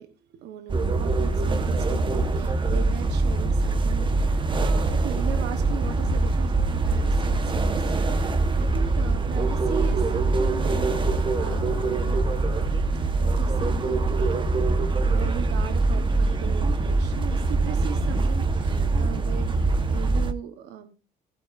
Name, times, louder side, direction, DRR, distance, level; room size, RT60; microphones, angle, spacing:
voice 1, 0.0-12.5 13.0-14.6 15.0-20.9, right 10 dB, 80° right, 8 dB, 1.1 m, -38 dB
sound 1, 0.7-20.3, right 3 dB, 30° right, 1.2 m, -23 dB
sound 2, 7.2-14.5, left 1 dB, 80° left, 3.7 m, -43 dB
16.0 x 8.5 x 2.6 m, 0.33 s
cardioid pair, 110°, 17 cm